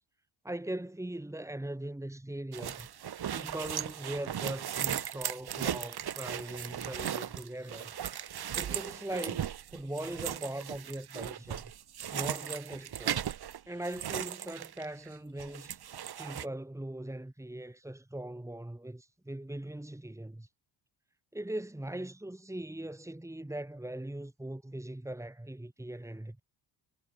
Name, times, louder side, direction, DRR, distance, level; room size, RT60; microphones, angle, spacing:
voice 1, 0.4-2.9 3.3-7.9 8.5-9.4 9.7-11.6 12.1-13.2 13.7-15.8 16.2-20.5 21.3-26.4, right 1 dB, 5° right, 4.0 m, -40 dB
sound 1, 2.5-15.1 15.4-16.4, right 9 dB, 60° right, 3.7 m, -37 dB
cardioid pair, 125°, 43 cm